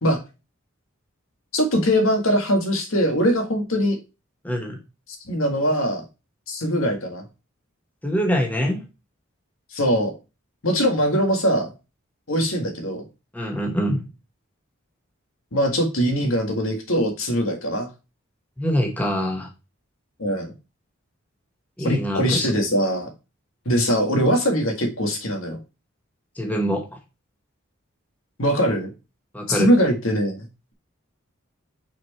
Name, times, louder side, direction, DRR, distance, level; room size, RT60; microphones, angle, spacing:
voice 1, 1.5-4.0 5.3-6.1 6.5-7.2 9.7-10.1 10.6-11.7 12.3-13.1 15.5-17.9 20.2-20.5 21.8-23.1 23.7-25.6 28.4-28.9 29.5-30.5, equal, 80° left, 4 dB, 1.8 m, -21 dB
voice 2, 4.4-4.8 8.0-8.8 13.3-14.1 18.6-19.5 21.8-22.5 26.4-27.0 29.3-29.7, equal, 10° left, 2 dB, 1.1 m, -24 dB
6.0 x 4.6 x 4.2 m, 0.28 s
head